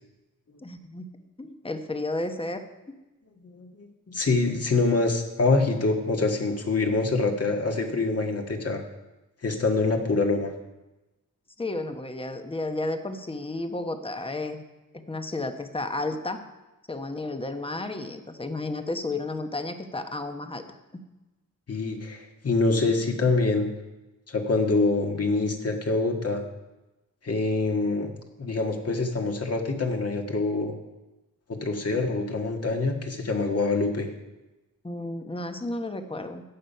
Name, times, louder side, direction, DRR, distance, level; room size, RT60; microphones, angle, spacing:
voice 1, 0.6-1.1 1.4-2.6 11.6-14.6 14.9-16.4 16.9-20.6 20.9-21.0 34.8-36.4, left 2 dB, 15° left, 7 dB, 1.0 m, -32 dB
voice 2, 3.4-8.8 9.4-10.5 21.7-23.7 24.3-26.4 27.2-28.1 28.4-30.7 31.5-34.1, left 3 dB, 45° left, 3 dB, 1.7 m, -25 dB
14.5 x 8.8 x 5.6 m, 1.0 s
wide cardioid pair, 125°, 34 cm